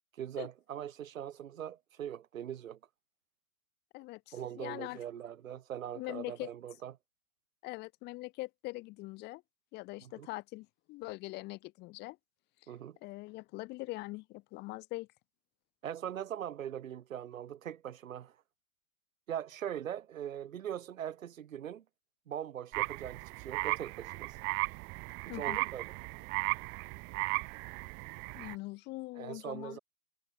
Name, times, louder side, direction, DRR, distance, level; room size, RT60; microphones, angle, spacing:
voice 1, 0.2-2.8 4.3-6.9 10.0-10.3 12.7-13.0 15.8-18.4 19.3-21.8 22.3-24.4 25.3-26.0 29.2-29.8, right 10 dB, 65° right, 2.2 m, -41 dB
voice 2, 3.9-5.0 5.9-6.5 7.6-9.4 9.7-12.2 13.0-15.1 25.3-25.6 28.3-29.8, left 21 dB, 25° left, 1.2 m, -42 dB
sound 1, 22.7-28.5, right 30 dB, 25° right, 1.3 m, -36 dB
hypercardioid pair, 130°, 44 cm